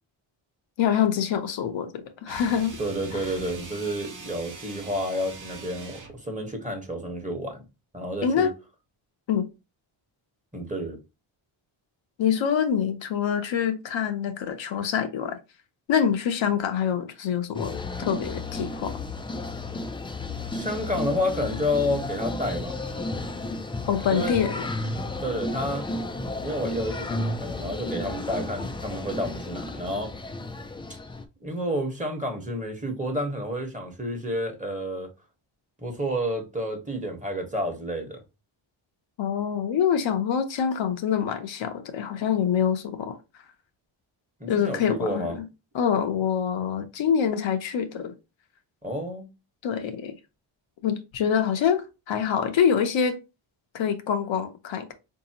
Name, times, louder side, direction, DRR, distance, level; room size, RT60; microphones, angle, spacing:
voice 1, 0.8-2.8 3.1-3.2 8.2-8.5 9.3-9.5 12.2-15.4 15.9-18.9 23.9-24.7 39.2-43.2 44.5-45.4 45.7-48.1 49.6-50.2 50.8-53.2 53.7-54.9, left 8 dB, 70° left, 0.7 m, -25 dB
sound 1, 2.2-6.2, right 4 dB, 40° right, 0.8 m, -42 dB
voice 2, 2.8-7.6 7.9-8.5 10.5-11.0 20.5-22.8 24.1-24.3 25.2-25.8 26.4-30.1 31.4-35.1 35.8-38.2 44.4-45.4 48.8-49.3, equal, 15° right, 1.1 m, -30 dB
sound 2, 17.5-31.2, left 2 dB, 10° left, 0.3 m, -33 dB
3.9 x 2.7 x 2.8 m
cardioid pair, 85°, 47 cm